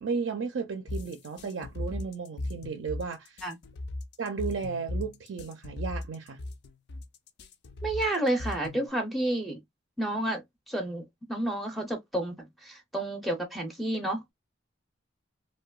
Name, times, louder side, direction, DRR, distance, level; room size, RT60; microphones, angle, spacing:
voice 1, 0.0-3.4 4.2-6.4, right 5 dB, 80° right, 0.4 m, -34 dB
sound 1, 0.9-8.9, left 2 dB, 60° left, 0.4 m, -37 dB
voice 2, 7.8-9.6 10.0-11.0 11.3-14.3, right 1 dB, ahead, 0.4 m, -30 dB
2.8 x 2.2 x 2.2 m
head